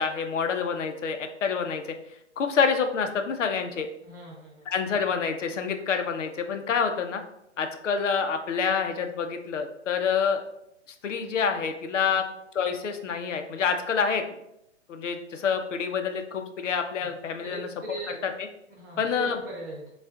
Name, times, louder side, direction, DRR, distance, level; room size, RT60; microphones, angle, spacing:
voice 1, 0.0-1.8 2.4-3.9 4.7-7.2 7.6-10.4 11.0-12.2 12.5-14.2 14.9-17.7 19.0-19.4, left 6 dB, 85° left, 6 dB, 0.7 m, -27 dB
voice 2, 4.0-4.7 12.1-12.2 17.0-17.1 17.4-18.2 18.7-19.9, right 2 dB, 15° right, -4 dB, 0.5 m, -39 dB
7.2 x 2.4 x 2.4 m, 0.82 s
hypercardioid pair, 155°, 36 cm